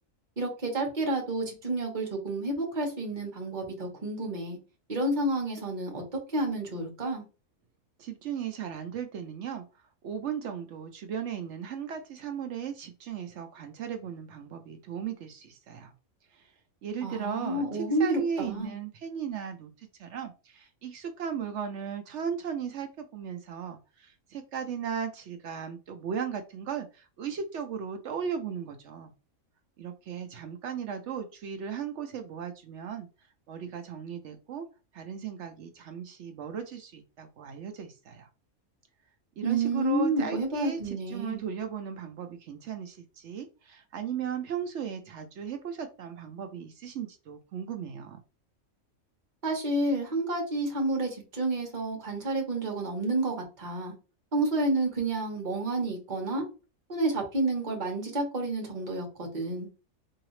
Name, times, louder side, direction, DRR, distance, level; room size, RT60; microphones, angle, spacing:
voice 1, 0.4-4.6 4.9-6.0 6.3-7.2 17.0-18.7 39.4-41.4 49.4-53.9 54.3-56.4 56.9-59.7, right 2 dB, 35° right, 1.2 m, -30 dB
voice 2, 8.0-15.9 16.3-16.5 16.8-29.1 29.8-33.1 33.5-34.7 34.9-38.3 39.4-48.2, right 7 dB, 65° right, 0.8 m, -36 dB
3.8 x 2.8 x 3.1 m
omnidirectional pair, 1.5 m